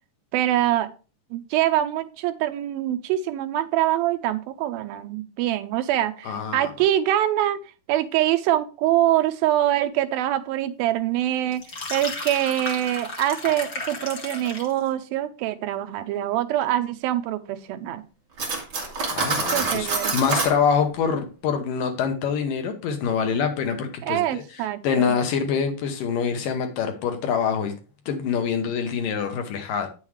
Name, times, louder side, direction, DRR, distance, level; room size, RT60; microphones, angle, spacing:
voice 1, 0.3-0.9 1.3-7.6 7.9-11.6 11.9-18.0 19.5-20.1 24.0-25.1, right 13 dB, 80° right, 10 dB, 2.3 m, -24 dB
voice 2, 6.2-6.7 19.1-27.7 28.1-29.9, left 6 dB, 70° left, 6 dB, 2.5 m, -25 dB
sound 1, 11.5-14.8, left 3 dB, 55° left, 1.0 m, -34 dB
Cutlery silverware, 18.4-20.6, right 4 dB, 35° right, 1.9 m, -26 dB
9.1 x 7.2 x 3.2 m, 0.34 s
omnidirectional pair, 4.3 m